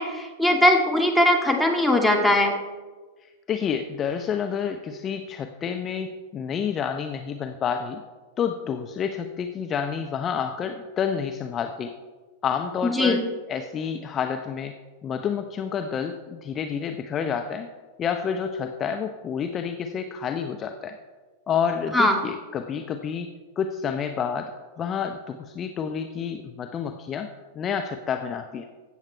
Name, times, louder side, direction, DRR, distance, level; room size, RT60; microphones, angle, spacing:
voice 1, 0.0-2.5 12.8-13.2 21.9-22.1, left 1 dB, ahead, 1 dB, 1.9 m, -20 dB
voice 2, 3.5-8.0 8.4-11.9 12.4-13.2 13.5-14.7 15.0-17.7 18.0-21.0 21.5-23.3 23.6-24.5 24.8-27.3 27.5-28.7, left 7 dB, 30° left, 6 dB, 0.7 m, -29 dB
15.5 x 7.4 x 4.5 m, 1.4 s
figure-of-eight pair, 95°, 0 cm